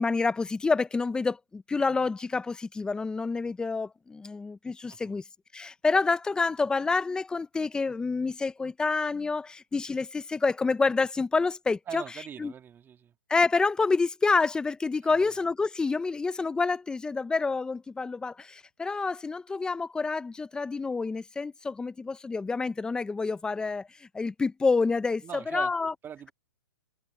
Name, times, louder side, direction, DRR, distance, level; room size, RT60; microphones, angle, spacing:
voice 1, 0.0-5.2 5.5-12.0 12.4-12.5 13.3-25.9, left 4 dB, 5° left, 0.6 m, -28 dB
voice 2, 11.9-13.1 15.0-15.3 25.2-25.7 26.0-26.3, right 8 dB, 15° right, 2.2 m, -41 dB
hypercardioid pair, 150°, 14 cm